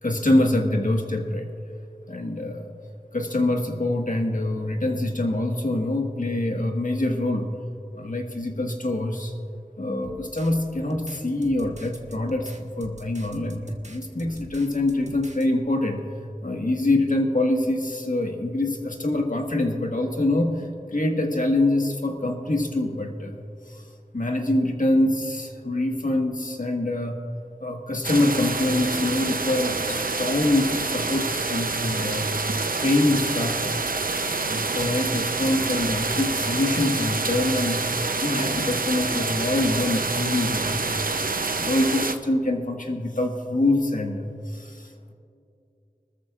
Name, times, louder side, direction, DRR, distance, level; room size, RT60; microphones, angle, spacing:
voice 1, 0.0-1.5 2.1-2.7 3.1-7.5 7.9-9.3 9.8-16.1 16.4-23.8 24.1-27.2 27.6-32.3 32.8-33.8 34.4-37.9 38.2-40.9 41.6-44.9, left 1 dB, 60° left, 2 dB, 1.6 m, -25 dB
sound 1, 10.0-15.5, right 2 dB, 50° right, 1.2 m, -45 dB
sound 2, 28.0-42.2, right 3 dB, 70° right, 0.7 m, -27 dB
24.0 x 13.5 x 2.5 m, 2.6 s
wide cardioid pair, 40°, 15 cm